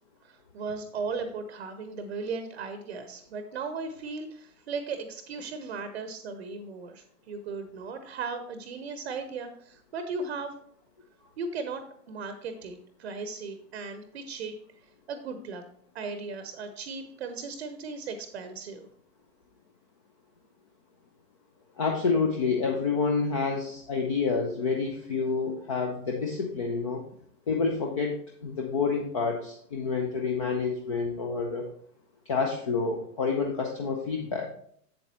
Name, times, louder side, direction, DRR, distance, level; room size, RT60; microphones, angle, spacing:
voice 1, 0.2-10.5 11.4-14.5 15.1-15.6 15.9-18.9, right 4 dB, 40° right, 9 dB, 0.8 m, -37 dB
voice 2, 21.8-27.0 27.5-31.7 32.3-34.5, left 4 dB, 20° left, 1 dB, 0.4 m, -28 dB
7.8 x 7.6 x 2.9 m, 0.63 s
figure-of-eight pair, 110°, 48 cm